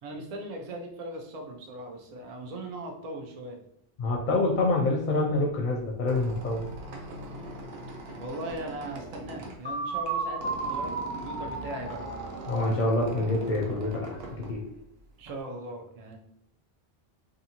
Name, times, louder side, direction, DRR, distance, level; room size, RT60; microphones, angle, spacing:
voice 1, 0.0-3.6 8.2-12.0 15.2-16.2, right 1 dB, 50° right, 2 dB, 0.5 m, -39 dB
voice 2, 4.0-6.6 12.5-14.6, left 2 dB, 60° left, -2 dB, 0.6 m, -26 dB
Squeak, 5.8-15.4, right 2 dB, 80° right, 0.8 m, -42 dB
sound 1, 9.7-13.5, right 3 dB, 10° left, 0.5 m, -34 dB
2.5 x 2.5 x 2.8 m, 0.76 s
omnidirectional pair, 1.0 m